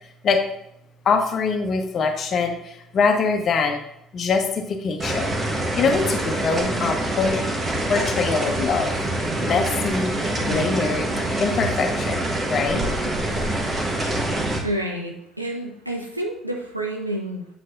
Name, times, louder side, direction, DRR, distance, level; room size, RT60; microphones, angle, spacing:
voice 1, 1.0-3.8 4.1-7.4 7.9-8.9 9.4-10.2 10.5-11.1 11.4-12.2 12.5-12.8, left 5 dB, 45° left, 5 dB, 1.1 m, -23 dB
sound 1, 5.0-14.6, right 1 dB, 30° right, 1.4 m, -25 dB
voice 2, 13.8-17.5, right 1 dB, 90° right, 1 dB, 0.8 m, -30 dB
8.1 x 7.6 x 2.6 m, 0.78 s
figure-of-eight pair, 50°, 0 cm